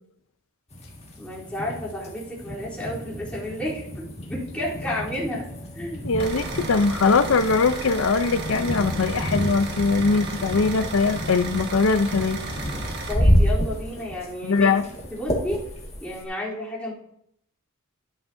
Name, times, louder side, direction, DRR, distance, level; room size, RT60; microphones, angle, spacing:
sound 1, 0.7-16.3, equal, 30° left, 1.8 m, -29 dB
voice 1, 1.2-5.5 5.7-6.1 13.1-14.7 15.1-15.6 16.0-16.9, left 1 dB, 5° left, -8 dB, 3.4 m, -31 dB
voice 2, 6.0-12.4 14.4-14.8, left 4 dB, 65° left, 11 dB, 0.6 m, -21 dB
sound 2, 6.2-13.1, right 3 dB, 55° right, 1.5 m, -34 dB
11.5 x 9.2 x 2.7 m, 0.74 s
head